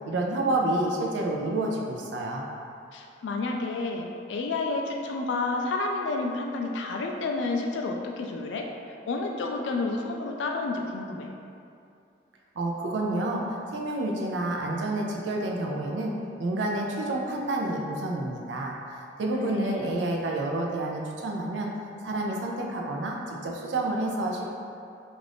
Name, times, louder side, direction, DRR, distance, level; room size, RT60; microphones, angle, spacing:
voice 1, 0.1-2.5 12.6-16.1 16.4-21.7 22.0-24.5, right 2 dB, 85° right, 0 dB, 0.4 m, -29 dB
voice 2, 2.9-8.7 9.1-11.3 19.4-19.9, left 3 dB, 85° left, 2 dB, 0.3 m, -30 dB
2.4 x 2.4 x 3.3 m, 2.5 s
head